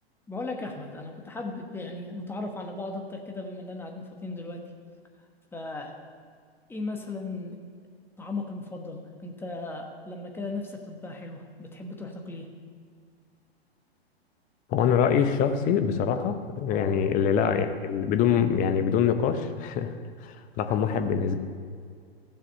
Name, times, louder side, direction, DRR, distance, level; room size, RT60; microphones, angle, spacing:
voice 1, 0.3-4.7 5.5-6.0 6.7-7.6 8.2-12.5 16.7-17.0 20.7-20.8, left 2 dB, 5° left, 2 dB, 1.2 m, -37 dB
voice 2, 14.7-19.9 20.2-21.4, left 7 dB, 25° left, 9 dB, 0.8 m, -24 dB
15.0 x 7.4 x 5.4 m, 2.1 s
figure-of-eight pair, 105°, 31 cm